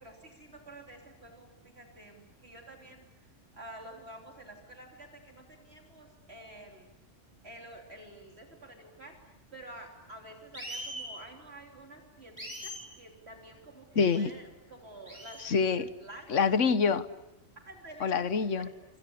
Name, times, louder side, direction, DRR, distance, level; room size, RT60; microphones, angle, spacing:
voice 1, 0.0-6.9 7.4-9.2 9.5-16.5 17.5-18.1, right 1 dB, 60° right, 2 dB, 3.5 m, -50 dB
sound 1, 10.5-11.1 12.4-12.8 14.0-14.2 15.0-15.5, equal, 20° right, 8.0 m, -41 dB
voice 2, 14.0-14.3 15.4-15.9 16.3-17.0 18.0-18.7, left 5 dB, 80° left, 14 dB, 1.5 m, -26 dB
27.0 x 26.0 x 8.6 m, 0.98 s
omnidirectional pair, 1.3 m